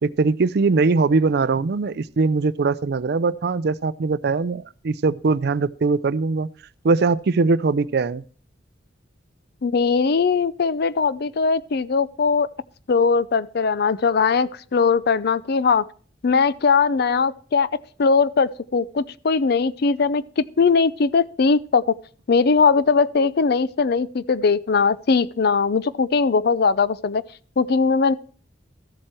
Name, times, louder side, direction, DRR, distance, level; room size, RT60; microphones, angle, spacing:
voice 1, 0.0-6.5 6.8-8.2, right 4 dB, 55° right, 0.4 m, -21 dB
voice 2, 9.6-12.5 12.9-15.8 16.2-17.7 18.0-22.0 22.3-27.2 27.6-28.1, left 5 dB, 55° left, 0.5 m, -20 dB
14.0 x 7.7 x 4.4 m
head